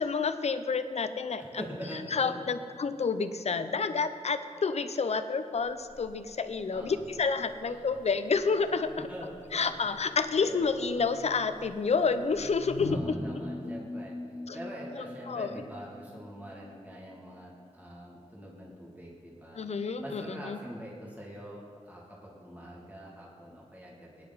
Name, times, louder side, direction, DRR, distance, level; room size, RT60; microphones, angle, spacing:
voice 1, 0.0-1.6 2.1-9.1 9.5-13.0 14.5-14.6 15.0-15.5 19.6-20.6, left 5 dB, 60° left, 10 dB, 0.7 m, -29 dB
voice 2, 1.4-2.3 6.7-7.0 7.6-8.0 9.1-9.8 10.4-10.8 12.9-14.1 14.5-24.2, equal, 15° right, -5 dB, 2.4 m, -44 dB
Buzz, 5.5-13.3, left 3 dB, 90° left, 1.1 m, -46 dB
sound 1, 12.8-16.9, left 1 dB, 20° left, 1.0 m, -41 dB
20.0 x 9.9 x 4.1 m, 2.2 s
wide cardioid pair, 120°, 12 cm